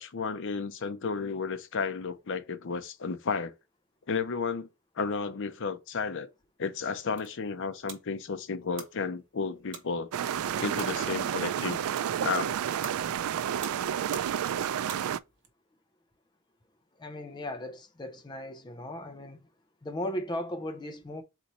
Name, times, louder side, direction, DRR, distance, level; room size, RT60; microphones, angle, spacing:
voice 1, 0.0-3.5 4.1-4.7 5.0-6.3 6.6-10.1 10.6-11.8 12.2-12.6, left 5 dB, 60° left, 0.6 m, -32 dB
sound 1, 6.9-15.5, right 6 dB, 60° right, 0.9 m, -48 dB
sound 2, 10.1-15.2, right 9 dB, 80° right, 0.3 m, -30 dB
voice 2, 17.0-19.4 19.8-21.2, left 1 dB, 20° left, 0.5 m, -37 dB
4.0 x 3.0 x 4.1 m
head